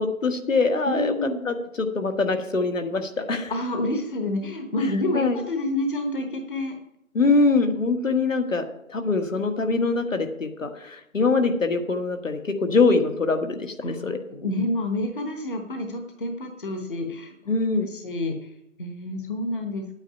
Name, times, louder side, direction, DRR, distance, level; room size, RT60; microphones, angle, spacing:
voice 1, 0.0-1.1 1.4-3.5 5.1-5.4 7.1-14.2 17.5-17.9, left 3 dB, 65° left, 6 dB, 1.6 m, -23 dB
voice 2, 0.9-1.5 3.5-6.7 13.8-17.3 17.8-18.5 18.8-19.8, left 1 dB, 40° left, 4 dB, 1.2 m, -28 dB
9.5 x 8.9 x 5.7 m, 0.81 s
figure-of-eight pair, 165°, 42 cm